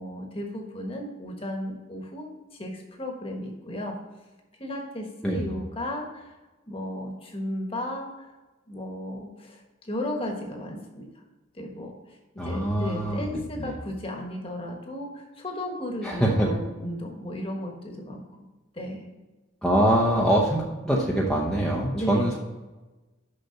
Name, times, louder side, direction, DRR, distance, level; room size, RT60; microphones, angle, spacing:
voice 1, 0.0-3.9 4.6-6.3 6.7-8.3 8.7-11.2 11.5-12.2 12.4-18.2 18.7-19.1 21.9-22.3, left 1 dB, 25° left, 2 dB, 1.3 m, -34 dB
voice 2, 12.4-13.2 13.6-13.7 16.0-16.5 19.6-22.3, right 1 dB, 5° left, -4 dB, 0.8 m, -24 dB
6.6 x 5.9 x 5.7 m, 1.2 s
head